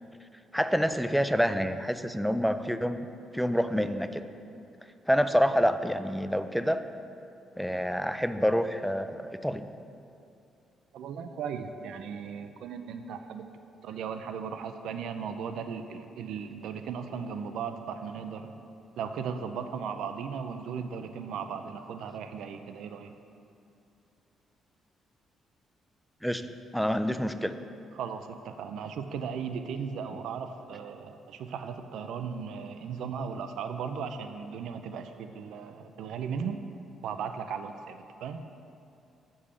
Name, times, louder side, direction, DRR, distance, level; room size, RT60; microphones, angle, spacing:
voice 1, 0.5-3.1 3.3-4.3 5.1-6.8 7.6-9.7 26.2-26.5 26.7-27.5, equal, ahead, 10 dB, 0.4 m, -27 dB
voice 2, 10.9-13.5 13.8-18.5 19.0-23.1 27.9-36.6 37.0-38.4, right 6 dB, 80° right, 8 dB, 0.4 m, -37 dB
6.6 x 5.4 x 7.0 m, 2.6 s
cardioid pair, 90°, 0 cm